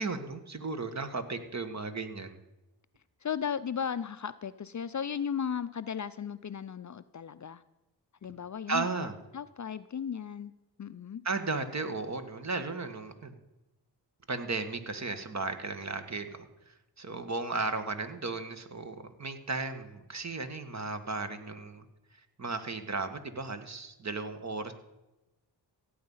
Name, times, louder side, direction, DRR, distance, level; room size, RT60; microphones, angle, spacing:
voice 1, 0.0-2.4 8.7-9.1 11.2-13.3 14.3-21.8 22.4-24.7, right 3 dB, 40° right, 9 dB, 1.7 m, -35 dB
voice 2, 3.2-7.6 8.2-9.1 9.3-10.5 10.8-11.2, left 7 dB, 40° left, 14 dB, 0.6 m, -35 dB
16.0 x 8.7 x 5.6 m, 0.98 s
cardioid pair, 60°, 43 cm